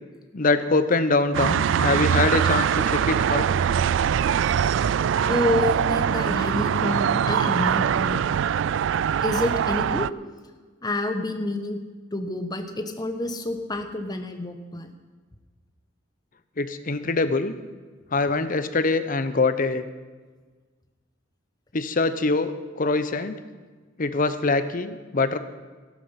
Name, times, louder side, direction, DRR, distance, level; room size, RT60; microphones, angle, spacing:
voice 1, 0.3-3.5 16.6-17.5 18.1-19.9 21.7-23.3 24.0-25.4, left 3 dB, 45° left, 11 dB, 0.8 m, -24 dB
sound 1, 1.3-10.1, right 8 dB, 65° right, 0.3 m, -23 dB
voice 2, 5.3-8.3 9.2-10.1 10.8-11.8 12.1-14.9, left 1 dB, 20° left, 6 dB, 1.1 m, -28 dB
13.5 x 12.5 x 5.8 m, 1.4 s
head